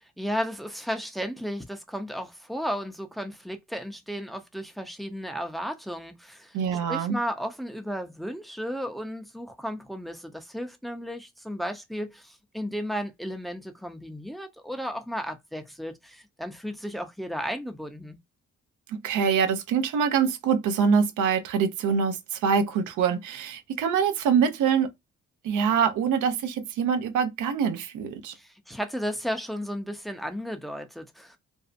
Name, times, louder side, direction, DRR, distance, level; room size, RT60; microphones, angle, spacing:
voice 1, 0.0-6.6 6.9-18.2 28.3-31.4, equal, ahead, 0.5 m, -34 dB
voice 2, 6.5-7.2 18.9-24.9 25.4-28.3, right 6 dB, 80° right, 0.7 m, -24 dB
2.6 x 2.1 x 2.5 m
cardioid pair, 90°, 30 cm